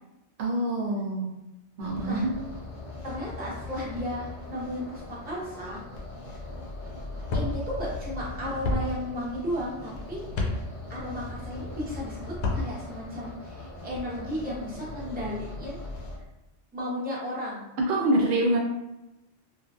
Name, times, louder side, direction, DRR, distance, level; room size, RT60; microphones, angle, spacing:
voice 1, 0.4-1.4 1.8-2.3 17.9-18.6, right 1 dB, 75° right, -1 dB, 0.9 m, -25 dB
sound 1, 1.8-16.2, left 2 dB, 50° left, 0.6 m, -40 dB
voice 2, 3.0-5.8 7.3-10.3 10.5-15.8 16.7-17.7, equal, 10° right, -6 dB, 0.6 m, -34 dB
sound 2, 7.3-7.5 8.6-8.8 10.3-10.5 12.3-12.6, left 3 dB, 75° left, 0.9 m, -27 dB
3.0 x 2.4 x 2.3 m, 0.95 s
omnidirectional pair, 1.2 m